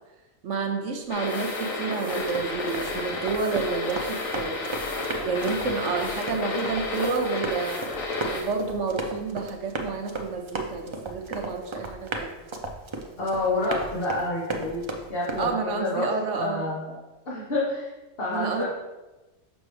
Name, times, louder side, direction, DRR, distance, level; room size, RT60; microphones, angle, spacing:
voice 1, 0.4-4.6 5.2-7.8 8.2-12.3 13.7-13.8 15.4-16.8 18.3-18.6, right 4 dB, 65° right, 3 dB, 1.0 m, -29 dB
sound 1, 1.0-8.8, right 1 dB, 5° left, 1.6 m, -49 dB
sound 2, 1.1-8.4, left 3 dB, 75° left, 1.3 m, -32 dB
Run, 2.2-15.5, right 2 dB, 45° right, 0.3 m, -36 dB
voice 2, 13.2-14.8 15.1-16.1 16.4-17.0 17.3-17.9 18.2-18.6, left 2 dB, 45° left, -6 dB, 1.4 m, -28 dB
6.3 x 6.0 x 3.2 m, 1.1 s
omnidirectional pair, 1.4 m